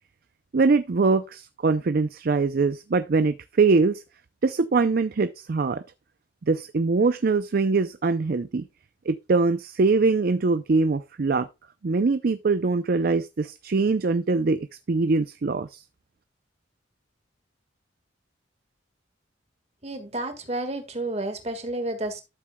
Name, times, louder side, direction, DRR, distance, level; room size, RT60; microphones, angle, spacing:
voice 1, 0.5-4.0 4.4-5.8 6.5-8.6 9.1-11.5 11.8-15.8, right 4 dB, 50° right, 0.4 m, -23 dB
voice 2, 19.8-22.2, right 2 dB, 35° right, 1.7 m, -31 dB
12.0 x 7.5 x 2.2 m
head